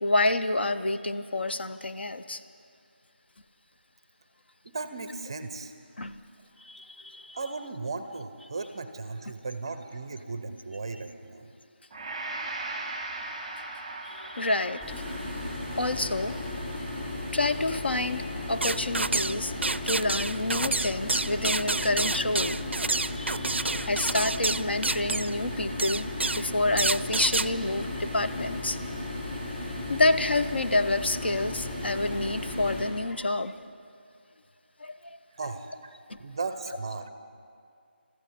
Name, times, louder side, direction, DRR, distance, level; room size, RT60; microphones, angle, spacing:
voice 1, 0.0-2.4 6.0-6.2 6.6-7.4 14.0-15.2 15.8-16.4 17.3-19.5 19.8-22.6 23.1-26.1 26.3-28.8 29.9-33.6 34.8-35.2 36.1-36.2, left 2 dB, 65° left, 9 dB, 0.7 m, -28 dB
voice 2, 4.6-5.7 7.3-11.5 35.3-35.9 36.2-37.1, right 3 dB, 25° right, 9 dB, 0.5 m, -36 dB
Gong, 11.9-20.2 20.7-20.8, right 2 dB, ahead, 1.1 m, -41 dB
sound 1, 14.8-32.8, left 1 dB, 15° left, 3.9 m, -35 dB
sound 2, 18.6-19.4 19.6-25.3 25.8-26.5 26.8-27.5, right 3 dB, 85° right, 0.4 m, -28 dB
22.5 x 14.0 x 4.3 m, 2.3 s
figure-of-eight pair, 170°, 6 cm